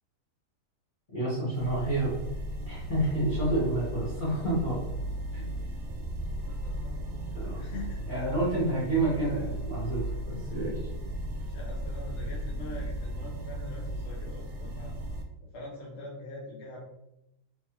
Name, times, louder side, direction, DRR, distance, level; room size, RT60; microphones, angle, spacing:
voice 1, 1.1-2.2 2.7-4.8 5.3-5.4 7.3-7.6 8.1-10.8, right 2 dB, 30° left, -8 dB, 1.3 m, -29 dB
sound 1, 1.5-15.2, right 1 dB, 75° right, 1.2 m, -36 dB
voice 2, 6.4-8.0 11.4-15.0 15.4-16.8, left 2 dB, 55° left, -4 dB, 0.8 m, -44 dB
3.4 x 3.3 x 2.9 m, 0.86 s
omnidirectional pair, 1.8 m